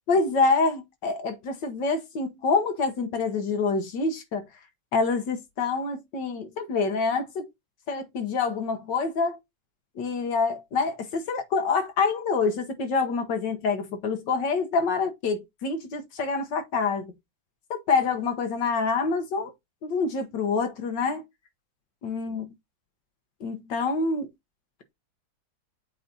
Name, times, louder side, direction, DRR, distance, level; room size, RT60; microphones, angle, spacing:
voice 1, 0.1-4.5 4.9-7.5 7.9-9.4 9.9-17.1 17.7-19.5 19.8-21.2 22.0-22.4 23.4-24.3, left 4 dB, 65° left, 1.6 m, -26 dB
8.1 x 3.1 x 4.0 m
omnidirectional pair, 2.1 m